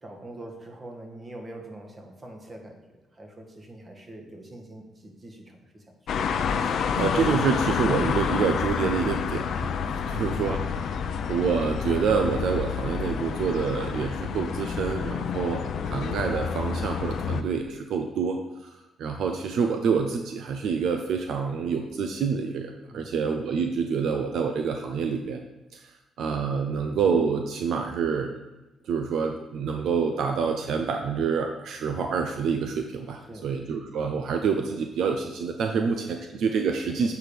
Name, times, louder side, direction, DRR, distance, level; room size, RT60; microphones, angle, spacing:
voice 1, 0.0-2.8 3.1-5.9 9.9-10.2 15.1-15.4 22.9-23.2 33.3-33.5 35.7-35.8, right 1 dB, 30° right, 2 dB, 1.6 m, -44 dB
sound 1, 6.1-17.4, left 6 dB, 65° left, 0.6 m, -28 dB
voice 2, 6.6-9.7 10.1-11.0 11.3-18.7 19.0-25.4 25.7-25.8 26.2-28.3 28.9-37.1, right 6 dB, 70° right, 4 dB, 0.7 m, -27 dB
7.9 x 4.8 x 5.1 m, 0.97 s
cardioid pair, 90°, 0 cm